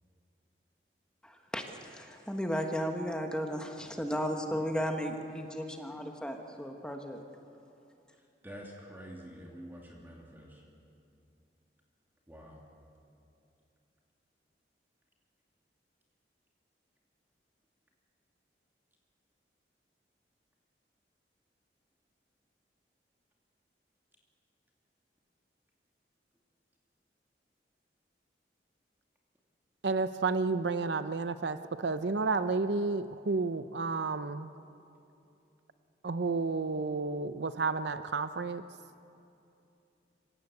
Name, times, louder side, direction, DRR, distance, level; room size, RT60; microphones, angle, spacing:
voice 1, 1.2-7.2, equal, 5° left, 3 dB, 1.4 m, -35 dB
voice 2, 8.4-10.6 12.3-12.6, equal, 10° right, -2 dB, 2.6 m, -47 dB
voice 3, 29.8-34.5 36.0-38.6, right 4 dB, 75° right, 11 dB, 0.6 m, -31 dB
26.0 x 16.5 x 8.2 m, 2.7 s
head